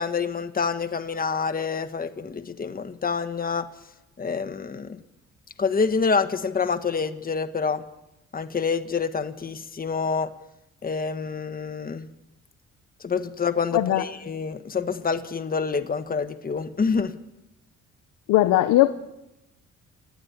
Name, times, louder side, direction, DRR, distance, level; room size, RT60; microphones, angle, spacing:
voice 1, 0.0-3.7 4.2-5.0 5.6-7.8 8.3-10.3 10.8-12.1 13.0-17.1, left 5 dB, 30° left, 1.3 m, -27 dB
voice 2, 13.7-14.0 18.3-18.9, left 15 dB, 90° left, 1.0 m, -19 dB
28.5 x 9.9 x 9.4 m
cardioid pair, 90°, 30 cm